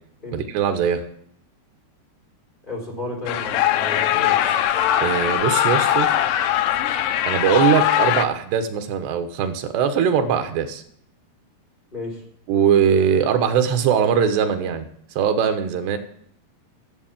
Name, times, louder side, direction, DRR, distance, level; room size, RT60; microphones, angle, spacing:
voice 1, 0.3-1.0 5.0-6.1 7.3-10.8 12.5-14.9 15.2-16.0, right 8 dB, 85° right, 7 dB, 3.3 m, -21 dB
voice 2, 2.6-4.4 11.9-12.2, left 2 dB, 10° left, -2 dB, 3.7 m, -32 dB
sound 1, 3.3-8.3, left 11 dB, 90° left, 1.8 m, -20 dB
13.5 x 7.5 x 7.3 m, 0.68 s
omnidirectional pair, 4.7 m